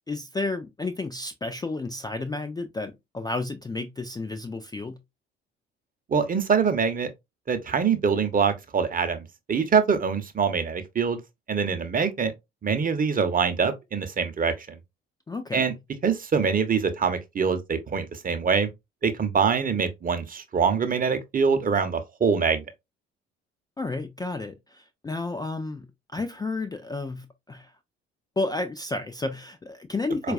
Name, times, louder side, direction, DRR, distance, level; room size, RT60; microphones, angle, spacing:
voice 1, 0.1-5.0 15.3-15.7 23.8-27.7 28.4-30.3, left 3 dB, 15° left, 0.4 m, -32 dB
voice 2, 6.1-7.1 7.5-11.2 11.5-12.3 12.6-14.8 15.5-15.7 16.0-18.7 19.0-22.6 30.2-30.3, right 6 dB, 25° right, 0.8 m, -24 dB
4.5 x 2.4 x 2.4 m
figure-of-eight pair, 50°, 31 cm